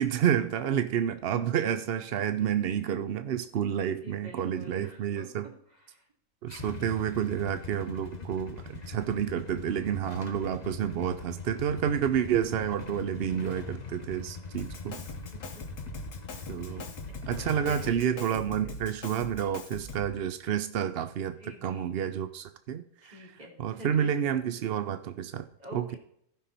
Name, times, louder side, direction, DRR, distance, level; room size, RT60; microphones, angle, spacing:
voice 1, 0.0-5.5 6.4-15.0 16.5-16.8 17.3-23.3 23.6-25.5 25.7-26.0, right 9 dB, 70° right, 11 dB, 0.5 m, -30 dB
voice 2, 1.3-1.8 4.0-5.3 5.7-6.0 8.2-8.3 8.7-9.0 15.5-15.6 16.6-17.2 17.7-18.3 21.4-22.0 23.0-24.4 25.6-26.0, left 1 dB, 25° right, -1 dB, 3.1 m, -47 dB
Motorcycle / Engine starting / Idling, 6.5-17.9, left 5 dB, 30° left, 0.9 m, -42 dB
Drum kit, 14.6-20.2, left 2 dB, 70° left, 1.7 m, -42 dB
15.0 x 5.6 x 4.1 m, 0.68 s
omnidirectional pair, 1.7 m